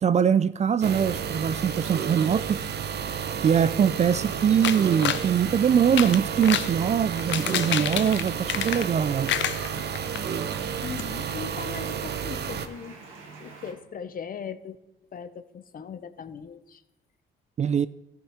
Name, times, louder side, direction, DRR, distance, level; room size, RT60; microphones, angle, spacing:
voice 1, 0.0-2.7 3.4-9.3 17.6-17.9, right 8 dB, 35° right, 0.3 m, -23 dB
sound 1, 0.8-12.7, right 7 dB, 55° right, 0.8 m, -31 dB
sound 2, 4.6-5.3 5.8-6.7 7.2-9.0 9.3-10.2 10.6-10.7 11.0-11.1, left 11 dB, 70° left, 0.5 m, -28 dB
sound 3, 4.8-13.7, right 4 dB, 90° right, 2.1 m, -46 dB
voice 2, 10.8-13.0 13.4-14.8 15.1-16.8, left 7 dB, 45° left, 0.8 m, -39 dB
13.5 x 6.5 x 4.9 m
cardioid pair, 90°, 20 cm